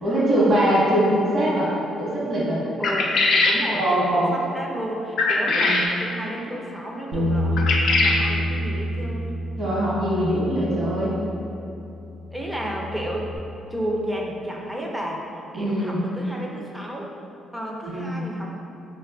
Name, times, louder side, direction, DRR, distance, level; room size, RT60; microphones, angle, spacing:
voice 1, 0.0-1.7 2.0-2.6 3.7-4.4 5.5-5.8 9.6-11.1 15.5-16.0 17.9-18.2, right 1 dB, 50° right, -8 dB, 1.0 m, -22 dB
sound 1, 2.8-3.6 5.2-5.9 7.6-8.2, left 3 dB, 65° left, 0.3 m, -20 dB
voice 2, 2.8-9.3 12.3-13.3 13.7-15.3 15.5-17.1 17.5-18.6, equal, 10° right, -1 dB, 0.4 m, -32 dB
Bass guitar, 7.1-13.4, equal, 80° right, 0.4 m, -28 dB
4.1 x 2.3 x 2.3 m, 2.8 s
cardioid pair, 90°, 0 cm